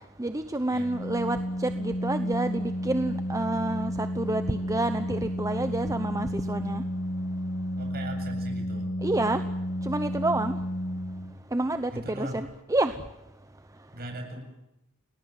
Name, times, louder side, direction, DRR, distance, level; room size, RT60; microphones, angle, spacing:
voice 1, 0.2-6.8 9.0-9.4 9.8-10.6 11.5-13.0, right 2 dB, 15° right, 1.0 m, -29 dB
Organ, 0.8-11.6, equal, 65° left, 5.7 m, -32 dB
voice 2, 7.8-8.9 11.9-12.5 13.9-14.4, right 1 dB, 45° right, 7.9 m, -39 dB
29.5 x 20.0 x 7.7 m
head